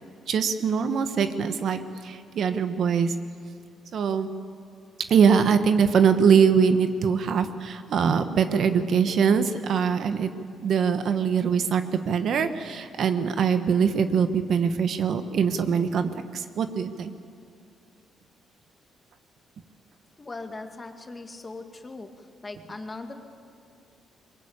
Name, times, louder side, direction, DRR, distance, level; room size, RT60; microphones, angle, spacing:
voice 1, 0.3-3.1 3.9-4.3 5.1-10.3 10.6-17.1, right 6 dB, 65° right, 9 dB, 1.3 m, -23 dB
voice 2, 20.2-22.1 22.4-23.1, left 3 dB, 25° left, 5 dB, 2.4 m, -39 dB
22.0 x 21.0 x 8.8 m, 2.4 s
cardioid pair, 90°, 0 cm